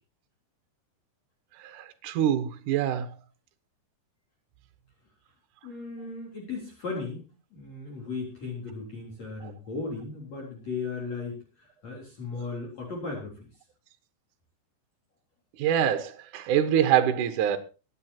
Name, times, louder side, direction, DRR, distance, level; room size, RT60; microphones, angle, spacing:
voice 1, 1.6-3.1 9.4-9.5 15.6-17.6, right 10 dB, 65° right, 2.1 m, -25 dB
voice 2, 5.6-7.2 7.5-13.5, left 4 dB, 40° left, 4.5 m, -36 dB
24.5 x 10.0 x 2.9 m
omnidirectional pair, 5.1 m